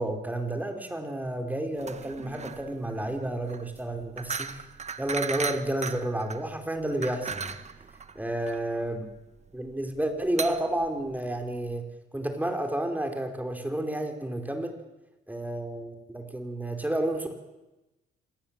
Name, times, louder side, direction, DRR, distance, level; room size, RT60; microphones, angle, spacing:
voice 1, 0.0-4.6 5.0-7.6 8.2-9.1 9.5-14.8 15.3-17.3, right 1 dB, 10° right, 5 dB, 4.7 m, -31 dB
sound 1, 1.8-11.8, right 5 dB, 35° right, 1.7 m, -37 dB
27.0 x 18.5 x 9.1 m, 1.0 s
cardioid pair, 90°, 20 cm